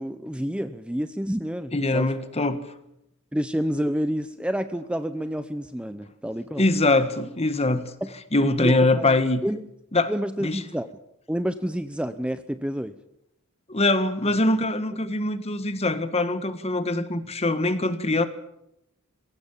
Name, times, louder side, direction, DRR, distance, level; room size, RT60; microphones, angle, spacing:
voice 1, 0.0-2.1 3.3-6.6 8.0-8.1 8.4-9.6 10.1-10.9 11.3-13.0, equal, 5° right, 10 dB, 0.7 m, -29 dB
voice 2, 1.7-2.6 6.6-7.9 8.3-9.4 9.9-10.1 10.4-10.6 13.7-18.3, left 2 dB, 30° left, 11 dB, 1.6 m, -23 dB
22.5 x 17.0 x 7.3 m, 0.82 s
head